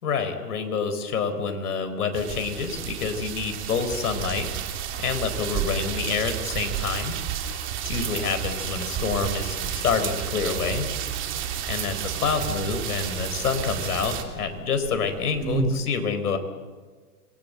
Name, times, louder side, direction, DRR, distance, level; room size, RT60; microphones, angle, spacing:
voice 1, 0.0-4.5 5.0-7.1 7.8-10.9 11.7-16.4, left 5 dB, 70° left, 8 dB, 4.6 m, -27 dB
sound 1, 2.1-14.2, right 9 dB, 25° right, 2.9 m, -31 dB
Buzz, 2.5-15.7, right 5 dB, 45° right, 3.8 m, -40 dB
27.0 x 21.5 x 8.0 m, 1.4 s
hypercardioid pair, 135°, 47 cm